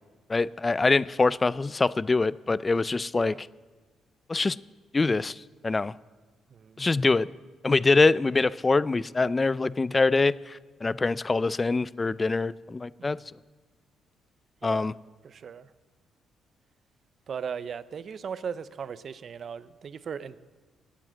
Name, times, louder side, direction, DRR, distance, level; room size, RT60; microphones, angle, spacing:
voice 1, 0.3-3.3 4.3-4.6 4.9-5.9 6.8-7.3 7.6-13.2 14.6-14.9, left 3 dB, 25° left, 19 dB, 0.4 m, -24 dB
voice 2, 6.5-6.8 13.0-13.1 14.6-14.9 15.2-15.7 17.3-20.4, right 7 dB, 50° right, 15 dB, 0.6 m, -37 dB
18.0 x 9.2 x 7.5 m, 1.4 s
cardioid pair, 90°, 0 cm